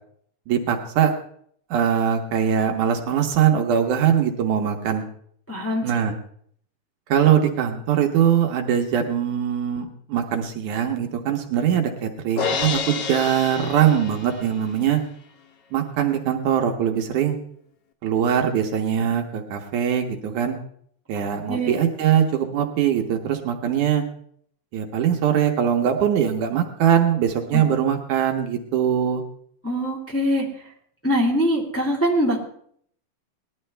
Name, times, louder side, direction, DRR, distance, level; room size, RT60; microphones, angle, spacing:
voice 1, 0.5-1.1 1.7-5.0 5.8-6.1 7.1-15.0 15.7-17.4 18.0-20.6 21.1-24.0 24.7-29.2, right 9 dB, 75° right, 3 dB, 2.4 m, -21 dB
voice 2, 5.5-5.9 21.5-21.7 27.5-27.6 29.6-30.5 31.0-32.4, equal, 5° left, -4 dB, 2.2 m, -22 dB
Crash cymbal, 12.4-14.6, left 6 dB, 65° left, 1.5 m, -28 dB
19.0 x 11.5 x 3.3 m, 0.62 s
omnidirectional pair, 3.7 m